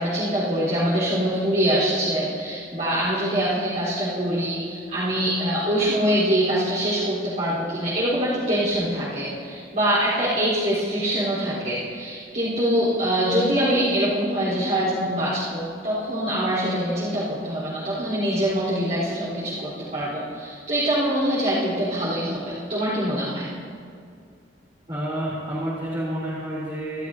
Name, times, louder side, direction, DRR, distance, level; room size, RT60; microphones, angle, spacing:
voice 1, 0.0-23.5, equal, 45° right, -11 dB, 4.1 m, -24 dB
voice 2, 24.9-27.1, right 1 dB, 30° right, -9 dB, 3.4 m, -29 dB
25.0 x 12.5 x 2.8 m, 2.3 s
head